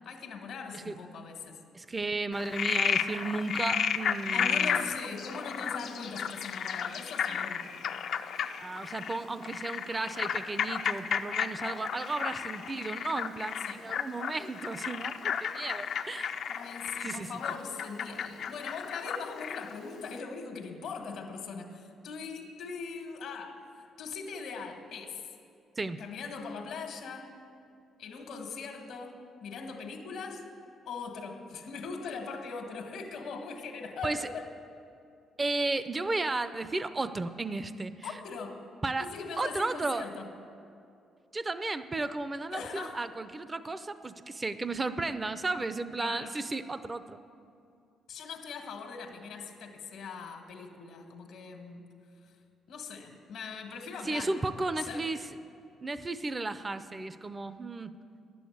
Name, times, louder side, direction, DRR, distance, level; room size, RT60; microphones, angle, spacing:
voice 1, 0.0-1.6 4.3-7.8 13.6-13.8 16.5-23.7 24.0-25.2 26.0-27.3 28.0-30.4 30.8-34.5 38.0-38.6 39.0-40.3 42.5-43.0 46.0-46.3 48.1-51.8 52.7-55.1, left 5 dB, 85° left, 3 dB, 1.6 m, -41 dB
voice 2, 1.7-4.9 8.6-16.3 17.0-17.3 25.8-26.0 34.0-34.3 35.4-38.2 38.8-39.1 39.4-40.1 41.3-47.2 54.0-55.3 55.8-57.9, right 3 dB, 25° right, 12 dB, 0.5 m, -34 dB
Frog, 2.3-19.8, left 7 dB, 65° left, 0.5 m, -33 dB
11.0 x 8.5 x 9.3 m, 2.5 s
cardioid pair, 90°, 0 cm